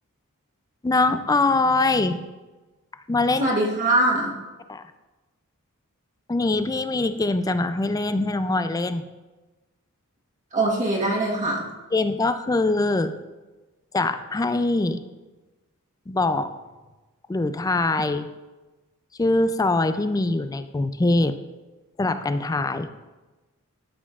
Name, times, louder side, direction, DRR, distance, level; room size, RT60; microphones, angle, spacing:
voice 1, 0.8-2.2 3.1-3.5 4.7-4.8 6.3-9.0 11.9-13.1 13.9-15.0 16.1-16.5 17.3-18.3 19.2-21.4 22.0-22.9, left 2 dB, 15° left, 10 dB, 0.3 m, -23 dB
voice 2, 3.4-4.3 10.5-11.7, right 2 dB, 35° right, -3 dB, 1.4 m, -22 dB
12.5 x 7.2 x 2.5 m, 1.2 s
head